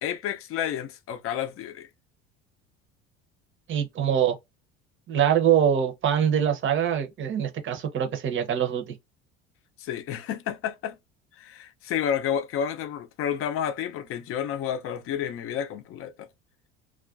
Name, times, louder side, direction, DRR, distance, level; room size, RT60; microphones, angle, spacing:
voice 1, 0.0-1.9 9.8-11.0 11.4-16.3, left 9 dB, 45° left, 0.5 m, -30 dB
voice 2, 3.7-4.4 5.1-9.0, right 9 dB, 40° right, 0.7 m, -24 dB
2.3 x 2.1 x 2.4 m
hypercardioid pair, 85°, 32 cm